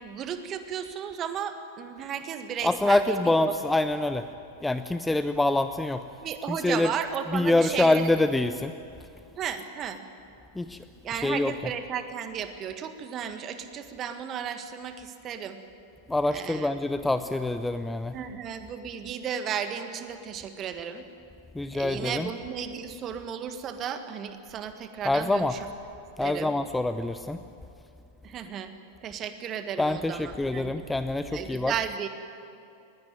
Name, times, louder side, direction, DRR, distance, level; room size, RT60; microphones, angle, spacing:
voice 1, 0.0-3.5 6.2-8.1 9.4-10.0 11.0-15.6 16.3-16.8 18.1-21.0 21.7-25.7 26.2-26.5 28.2-28.7 29.0-30.9 31.3-32.1, right 8 dB, 30° right, 9 dB, 1.6 m, -34 dB
voice 2, 2.6-4.3 4.6-6.0 6.5-6.9 7.3-8.7 10.6-10.8 11.2-11.5 16.1-18.1 21.6-22.3 25.0-25.5 26.2-27.4 29.8-31.7, left 2 dB, 5° left, 11 dB, 0.6 m, -25 dB
20.0 x 17.5 x 9.4 m, 2.6 s
figure-of-eight pair, 90°, 0 cm